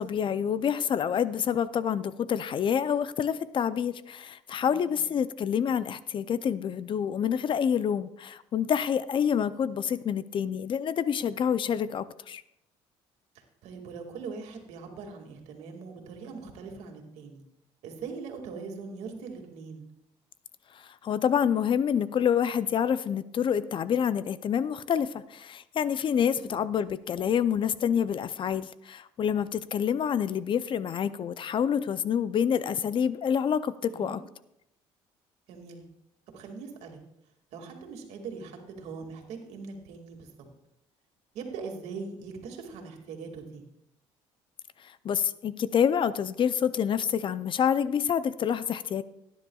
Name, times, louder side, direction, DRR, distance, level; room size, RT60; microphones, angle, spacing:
voice 1, 0.0-12.4 20.7-34.2 44.8-49.0, left 8 dB, 45° left, 15 dB, 0.5 m, -27 dB
voice 2, 4.7-5.1 13.3-17.4 17.8-19.9 26.3-26.5 33.8-34.2 35.5-35.8 36.3-37.0 37.5-40.5 41.3-43.6, right 5 dB, 80° right, 3 dB, 2.2 m, -41 dB
17.5 x 10.0 x 2.4 m, 0.81 s
cardioid pair, 90°, 11 cm